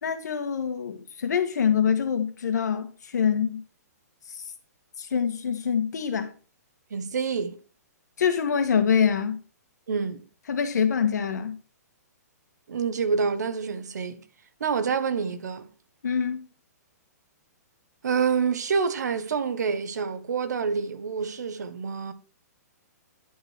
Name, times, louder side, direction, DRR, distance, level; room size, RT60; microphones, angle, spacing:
voice 1, 0.0-3.6 5.0-6.3 8.2-9.4 10.5-11.5 16.0-16.5, left 7 dB, 80° left, 1.7 m, -25 dB
voice 2, 6.9-7.6 9.9-10.2 12.7-14.2 14.6-15.7 18.0-22.1, right 5 dB, 80° right, 1.4 m, -27 dB
11.0 x 5.3 x 4.7 m
hypercardioid pair, 165°, 9 cm